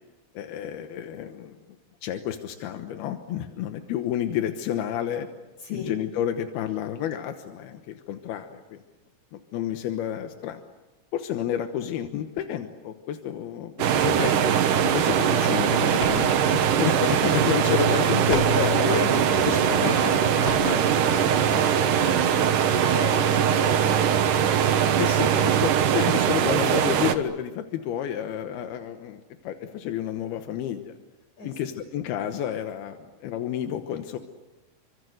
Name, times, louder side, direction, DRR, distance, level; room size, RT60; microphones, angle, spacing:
voice 1, 0.4-1.6 2.0-5.3 5.7-8.8 9.3-10.6 11.1-14.5 14.8-19.0 19.5-20.1 20.6-20.8 25.0-30.9 31.4-34.2, left 10 dB, 90° left, 7 dB, 3.1 m, -30 dB
sound 1, 13.8-27.2, right 8 dB, 65° right, 2.7 m, -21 dB
sound 2, 15.4-21.3, left 2 dB, 35° left, 3.8 m, -40 dB
voice 2, 18.0-24.2 25.1-25.4 31.4-31.8, left 2 dB, 50° left, 4 dB, 8.0 m, -34 dB
28.0 x 25.5 x 7.9 m, 1.1 s
omnidirectional pair, 4.3 m